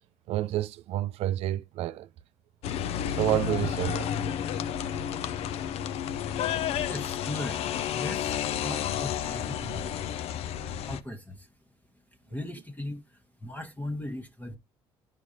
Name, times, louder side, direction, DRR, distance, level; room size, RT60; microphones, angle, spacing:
voice 1, 0.3-2.1 3.2-4.2, right 14 dB, 70° right, 0.4 m, -29 dB
sound 1, 2.6-11.0, left 9 dB, 70° left, 0.5 m, -31 dB
voice 2, 5.9-14.6, left 1 dB, 15° left, 1.0 m, -40 dB
9.9 x 5.0 x 2.7 m
supercardioid pair, 65°, 11 cm